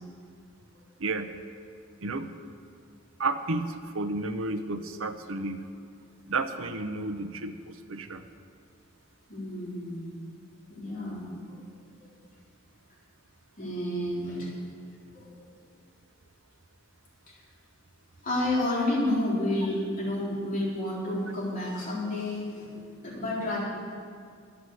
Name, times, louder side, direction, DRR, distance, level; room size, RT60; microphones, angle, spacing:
voice 1, 1.0-1.3 2.0-2.3 3.2-5.7 6.2-8.2, right 3 dB, 85° right, 8 dB, 0.8 m, -32 dB
voice 2, 9.3-10.1 10.7-11.6 13.6-14.5 15.1-15.3 18.2-23.6, left 1 dB, 40° left, -7 dB, 3.9 m, -30 dB
11.0 x 8.0 x 7.9 m, 2.2 s
head